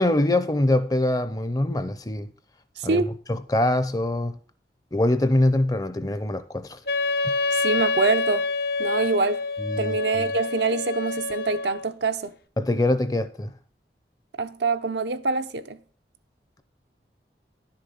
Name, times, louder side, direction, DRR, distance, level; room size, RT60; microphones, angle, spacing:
voice 1, 0.0-2.3 2.8-4.4 4.9-6.8 9.6-10.3 12.6-13.5, left 1 dB, 20° left, 0.6 m, -24 dB
voice 2, 2.8-3.1 7.5-8.5 8.8-9.4 9.8-12.3 14.4-15.8, right 4 dB, 80° right, 0.7 m, -25 dB
Wind instrument woodwind instrument, 6.9-11.9, left 3 dB, 60° left, 0.7 m, -27 dB
10.5 x 6.6 x 5.6 m
head